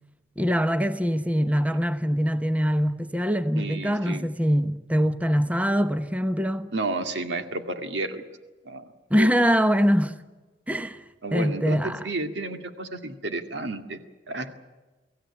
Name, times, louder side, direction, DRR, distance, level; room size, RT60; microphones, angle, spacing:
voice 1, 0.4-6.7 9.1-10.1 10.7-11.0 11.3-12.0, equal, 10° right, 0.9 m, -23 dB
voice 2, 3.6-4.3 6.7-8.2 8.6-9.3 11.2-14.0 14.3-14.5, right 2 dB, 70° right, 2.1 m, -31 dB
24.0 x 16.0 x 9.9 m
head